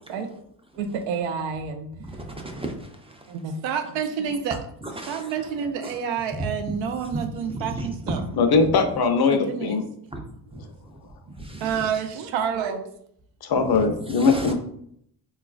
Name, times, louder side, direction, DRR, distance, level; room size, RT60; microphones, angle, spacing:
voice 1, 0.8-1.9 3.3-4.7 5.1-8.2 9.1-9.8 11.6-12.8, right 7 dB, 90° right, 6 dB, 0.6 m, -29 dB
voice 2, 2.1-3.3 4.8-5.5 5.8-6.0 7.1-8.4 10.1-10.3 10.5-10.7 11.4-11.9 13.7-14.5, right 1 dB, 15° right, 3 dB, 0.4 m, -34 dB
voice 3, 8.4-9.9 13.4-14.5, left 4 dB, 55° left, 7 dB, 0.7 m, -20 dB
3.8 x 2.4 x 2.4 m, 0.68 s
cardioid pair, 80°, 45 cm